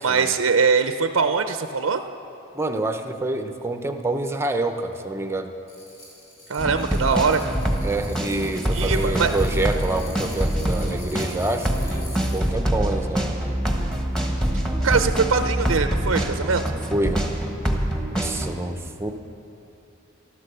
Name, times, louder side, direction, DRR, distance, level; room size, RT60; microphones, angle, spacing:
voice 1, 0.0-2.0 6.5-7.6 8.7-9.3 14.8-16.6, right 5 dB, 90° right, 8 dB, 0.6 m, -22 dB
voice 2, 2.5-5.5 7.8-13.4 16.9-17.3 18.1-19.1, right 2 dB, 15° right, 6 dB, 0.7 m, -27 dB
sound 1, 5.7-12.5, left 2 dB, 75° left, 4.2 m, -45 dB
sound 2, 6.6-18.5, right 1 dB, 5° left, 1.3 m, -25 dB
14.0 x 12.5 x 6.8 m, 2.9 s
head